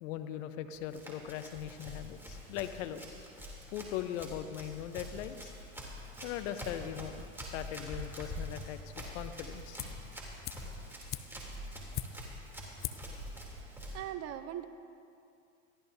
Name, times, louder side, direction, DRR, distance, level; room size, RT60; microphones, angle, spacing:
voice 1, 0.0-3.0 3.7-5.5 6.2-7.2 7.5-9.8, left 11 dB, 60° left, 10 dB, 1.0 m, -40 dB
Run, 0.7-14.0, equal, 5° right, 3.1 m, -45 dB
sound 1, 9.8-10.1 10.4-12.4 12.8-13.2 13.4-13.5, left 10 dB, 25° left, 0.5 m, -41 dB
voice 2, 13.7-14.7, right 11 dB, 35° right, 10 dB, 0.8 m, -41 dB
22.0 x 14.5 x 2.7 m, 2.5 s
hypercardioid pair, 100°, 42 cm